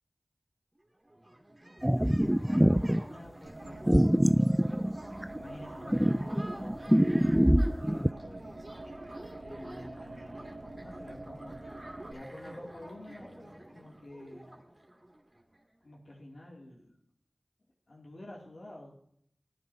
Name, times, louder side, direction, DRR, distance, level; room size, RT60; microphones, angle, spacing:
sound 1, 0.8-0.9 1.0-15.6, right 1 dB, 30° right, 2.7 m, -48 dB
sound 2, 1.8-3.0 3.9-5.4 5.9-8.1, equal, 10° right, 0.3 m, -24 dB
voice 1, 2.0-3.8 5.3-7.0 7.8-8.7 9.4-11.6 12.1-14.5 15.8-17.0 17.9-19.0, left 1 dB, 70° left, -3 dB, 2.8 m, -48 dB
sound 3, 3.5-12.1, right 2 dB, 60° right, 2.3 m, -46 dB
18.0 x 9.6 x 2.8 m, 0.67 s
wide cardioid pair, 45°, 0 cm